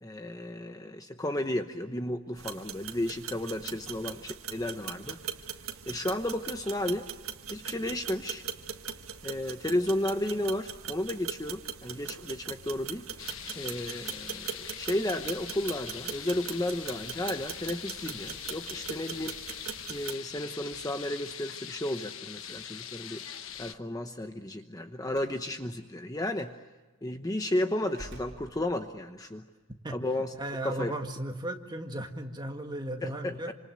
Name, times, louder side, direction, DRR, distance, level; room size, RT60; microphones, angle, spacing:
voice 1, 0.0-5.2 5.9-7.1 7.5-8.4 9.2-13.1 13.5-19.4 19.9-23.3 23.6-26.6 27.0-29.5 29.9-30.3 30.6-31.0 33.0-33.5, left 1 dB, 15° left, 6 dB, 0.9 m, -33 dB
sound 1, 2.4-20.1, right 8 dB, 70° right, 1.7 m, -41 dB
sound 2, 13.2-23.7, left 9 dB, 60° left, 1.2 m, -42 dB
Slam, 25.1-25.4 26.3-26.5 27.9-29.1, right 1 dB, 50° right, 4.8 m, -48 dB
voice 2, 30.4-33.5, right 1 dB, 20° right, 4 dB, 1.9 m, -36 dB
28.0 x 26.5 x 7.8 m, 1.2 s
head